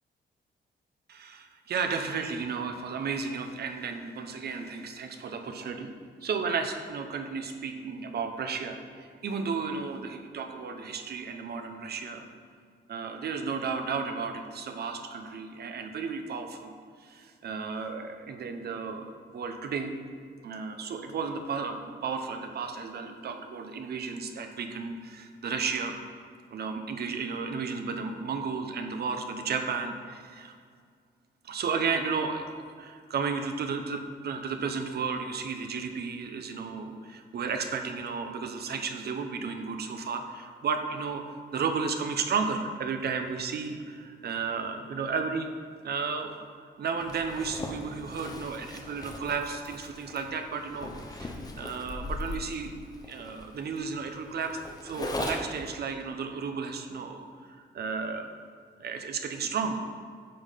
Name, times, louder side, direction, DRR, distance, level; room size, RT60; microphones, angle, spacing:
voice 1, 1.1-5.9 6.2-12.2 12.9-16.7 17.0-20.0 20.4-26.0 26.5-30.5 31.4-32.4 32.8-41.2 41.5-45.5 45.8-50.9 51.2-51.3 51.6-52.7 53.1-58.3 58.8-59.8, right 5 dB, 60° right, 6 dB, 0.8 m, -33 dB
Zipper (clothing), 47.0-55.7, left 2 dB, 20° left, 0.8 m, -39 dB
8.7 x 5.6 x 5.6 m, 2.1 s
wide cardioid pair, 175°, 19 cm